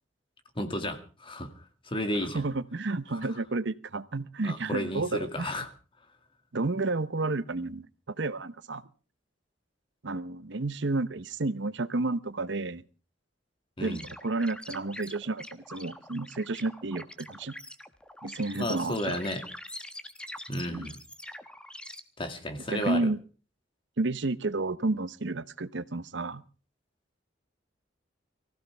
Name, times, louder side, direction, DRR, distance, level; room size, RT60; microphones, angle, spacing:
voice 1, 0.6-1.5 1.8-2.4 4.4-5.7 13.8-14.0 18.5-19.4 20.5-21.0 22.2-23.1, left 1 dB, 30° left, 6 dB, 2.3 m, -33 dB
voice 2, 2.3-5.5 6.5-8.8 10.0-12.8 13.8-17.5 18.2-19.2 20.7-20.9 22.7-23.2 24.0-26.4, right 3 dB, 65° right, 15 dB, 0.9 m, -31 dB
sound 1, 13.8-22.0, left 1 dB, 5° left, 1.2 m, -44 dB
24.0 x 15.5 x 3.5 m, 0.37 s
head